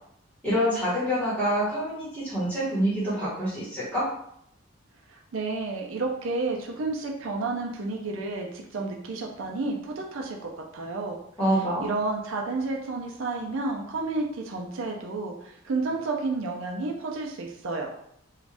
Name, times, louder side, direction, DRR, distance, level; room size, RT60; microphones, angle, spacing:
voice 1, 0.4-4.1 11.4-11.9, equal, 5° left, -10 dB, 1.2 m, -26 dB
voice 2, 5.3-11.2 11.8-17.9, right 3 dB, 75° right, 0 dB, 0.5 m, -31 dB
2.5 x 2.4 x 3.3 m, 0.72 s
head